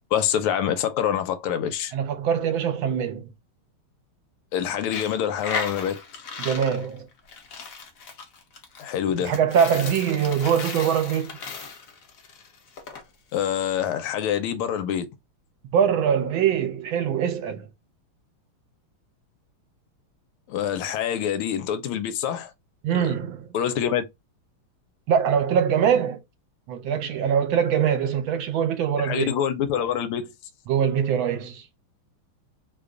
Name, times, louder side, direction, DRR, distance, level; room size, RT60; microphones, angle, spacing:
voice 1, 0.1-1.9 4.5-6.0 8.8-9.4 13.3-15.1 20.5-22.5 22.9-23.1 23.5-24.0 29.0-30.3, left 9 dB, 85° left, 1.5 m, -26 dB
voice 2, 1.9-3.2 6.4-7.1 9.2-11.3 15.7-17.7 22.8-23.5 25.1-26.2 26.7-29.3 30.7-31.6, right 8 dB, 70° right, 1.4 m, -23 dB
Coin (dropping), 4.8-13.0, left 5 dB, 60° left, 0.9 m, -36 dB
3.5 x 2.2 x 3.6 m
omnidirectional pair, 2.4 m